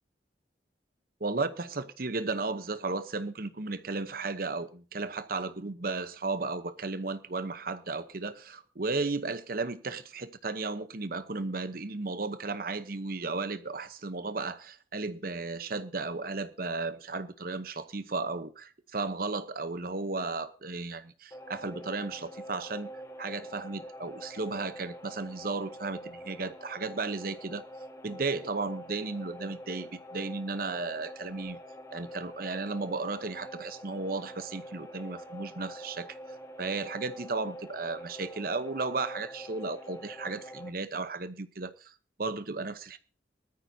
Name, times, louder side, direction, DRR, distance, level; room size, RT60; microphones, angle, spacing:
voice 1, 1.2-22.9 23.2-27.6 28.0-31.6 31.9-36.2 36.6-41.9 42.2-43.0, right 3 dB, 50° right, 0.9 m, -34 dB
sound 1, 21.3-40.7, equal, 15° left, 1.5 m, -45 dB
19.5 x 13.5 x 2.8 m
head